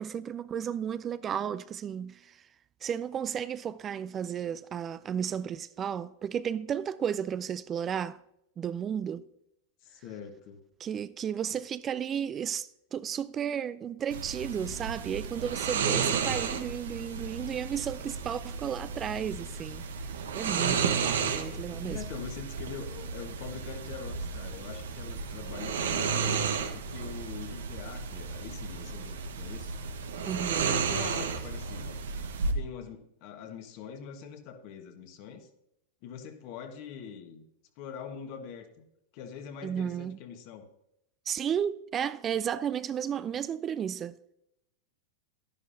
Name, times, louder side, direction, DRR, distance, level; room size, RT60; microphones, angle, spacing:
voice 1, 0.0-2.4 2.8-8.2 8.6-9.3 10.8-19.8 20.3-22.0 30.2-30.7 39.6-40.2 41.3-44.3, right 8 dB, 30° right, 0.4 m, -33 dB
voice 2, 9.8-10.6 11.5-11.6 15.8-16.2 20.5-29.7 30.6-32.0 32.5-35.5 36.0-37.4 37.8-38.8 39.1-40.7, left 7 dB, 55° left, 1.4 m, -43 dB
sound 1, 14.1-32.5, right 6 dB, 80° right, 1.0 m, -33 dB
11.0 x 11.0 x 2.7 m
hypercardioid pair, 105°, 0 cm